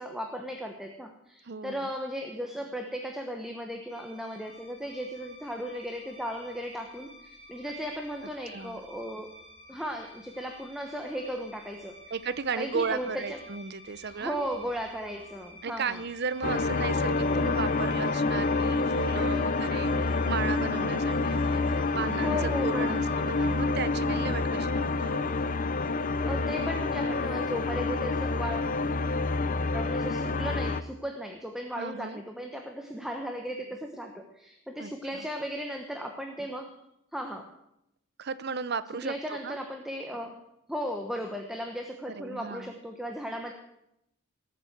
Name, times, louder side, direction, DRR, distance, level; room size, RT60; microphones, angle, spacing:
voice 1, 0.0-9.3 9.7-12.0 12.5-13.4 14.1-16.0 22.2-23.0 26.2-28.7 29.7-36.7 37.1-37.5 39.0-40.4 40.7-43.5, equal, ahead, 3 dB, 1.1 m, -36 dB
voice 2, 1.4-1.9 8.5-8.8 12.1-14.5 15.6-25.3 31.7-32.2 34.8-35.3 38.2-39.6 42.1-42.8, right 5 dB, 55° right, 15 dB, 0.7 m, -35 dB
sound 1, 3.9-23.6, left 1 dB, 15° left, 4.3 m, -52 dB
sound 2, 16.4-30.8, left 3 dB, 40° left, 0.6 m, -28 dB
18.0 x 7.5 x 8.0 m, 0.82 s
head